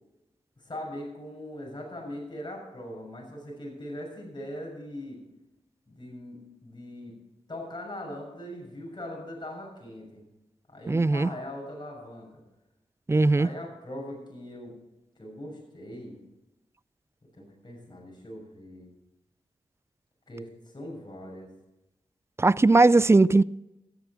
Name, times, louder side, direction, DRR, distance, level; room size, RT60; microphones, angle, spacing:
voice 1, 0.6-5.2 5.9-7.1 7.5-10.2 10.7-12.4 13.3-14.8 15.2-16.2 17.3-18.9 20.3-21.5, left 1 dB, 40° left, 6.6 m, -40 dB
voice 2, 10.9-11.3 13.1-13.5 22.4-23.4, right 3 dB, 20° right, 0.3 m, -19 dB
13.5 x 10.5 x 6.0 m
cardioid pair, 40°, 12 cm